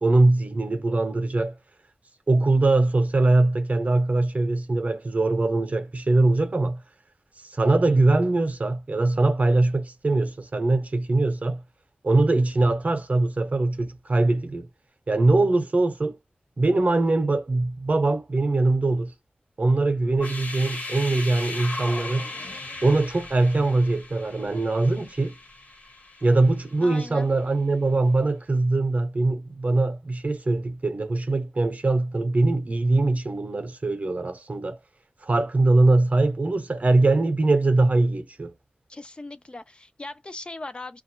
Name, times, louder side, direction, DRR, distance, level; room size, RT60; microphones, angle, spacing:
voice 1, 0.0-1.6 2.3-6.8 7.5-11.6 12.0-14.7 15.1-16.2 16.6-19.1 19.6-22.3 22.8-25.3 26.2-34.8 35.2-38.5, right 2 dB, 50° right, 0.6 m, -22 dB
sound 1, 20.1-27.0, left 2 dB, 55° left, 1.2 m, -37 dB
voice 2, 26.8-27.3 38.9-41.0, left 2 dB, 35° left, 0.4 m, -39 dB
2.3 x 2.0 x 2.8 m
wide cardioid pair, 80°, 3 cm